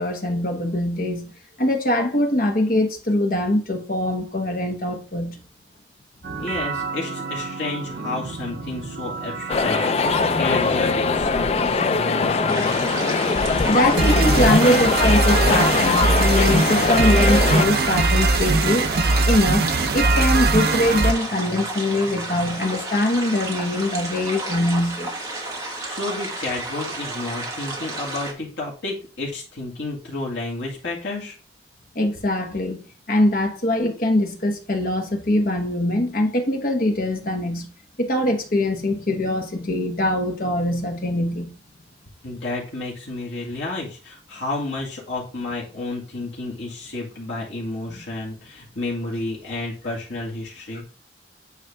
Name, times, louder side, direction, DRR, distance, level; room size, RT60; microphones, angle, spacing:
voice 1, 0.0-1.3 1.6-5.4 13.4-18.9 19.3-25.1 31.9-32.8 33.1-37.7 38.0-41.5 47.9-48.0 50.7-50.8, left 1 dB, 50° left, 1.2 m, -22 dB
sound 1, 6.2-21.1, right 3 dB, 55° right, 0.5 m, -23 dB
voice 2, 6.4-12.9 25.8-31.4 42.2-50.8, left 2 dB, 75° left, 1.9 m, -31 dB
sound 2, 9.5-17.7, left 4 dB, 35° left, 0.3 m, -21 dB
sound 3, 12.5-28.3, right 2 dB, 15° right, 1.4 m, -32 dB
9.3 x 3.3 x 3.4 m
head